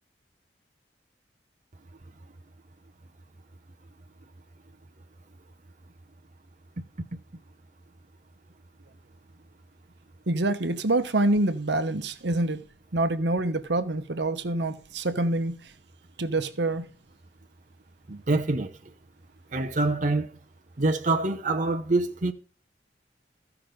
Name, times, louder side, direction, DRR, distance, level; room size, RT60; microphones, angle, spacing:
voice 1, 10.3-12.6 12.9-15.6 16.2-16.8, right 2 dB, 75° right, 1.0 m, -26 dB
voice 2, 18.1-18.7 19.5-20.3 20.8-22.3, right 2 dB, 45° right, 0.8 m, -25 dB
14.5 x 6.0 x 5.1 m
head